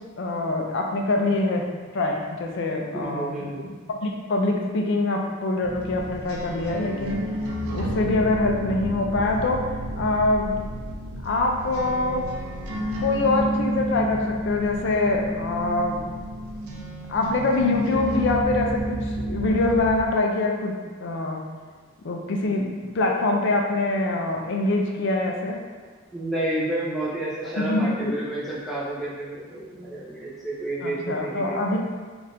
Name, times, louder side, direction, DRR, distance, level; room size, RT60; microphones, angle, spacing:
voice 1, 0.2-1.6 1.9-7.3 7.7-9.7 10.0-10.5 11.2-12.3 13.0-16.0 17.1-21.4 22.0-25.6 27.6-28.1 30.8-31.8, left 2 dB, 55° left, 1 dB, 0.4 m, -24 dB
voice 2, 3.0-3.6 26.1-31.6, right 1 dB, ahead, -10 dB, 0.7 m, -30 dB
sound 1, 5.6-20.0, equal, 80° right, 0.5 m, -30 dB
2.8 x 2.4 x 3.3 m, 1.5 s
head